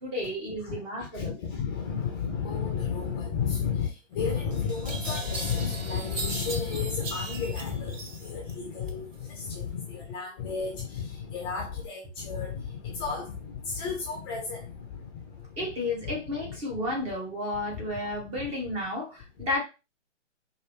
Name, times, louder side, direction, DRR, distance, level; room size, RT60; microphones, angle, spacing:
voice 1, 0.0-1.3 15.6-19.6, left 1 dB, 15° right, 1.0 m, -32 dB
voice 2, 0.6-15.7 16.0-16.2 17.7-17.8 18.4-18.5, left 6 dB, 20° left, 0.7 m, -32 dB
sound 1, 4.1-4.2 4.9-8.5 8.9-9.6, right 4 dB, 85° right, 1.0 m, -39 dB
Crash cymbal, 4.5-10.7 10.9-11.1, right 1 dB, 55° right, 1.6 m, -46 dB
4.7 x 2.7 x 3.2 m
hypercardioid pair, 145°, 38 cm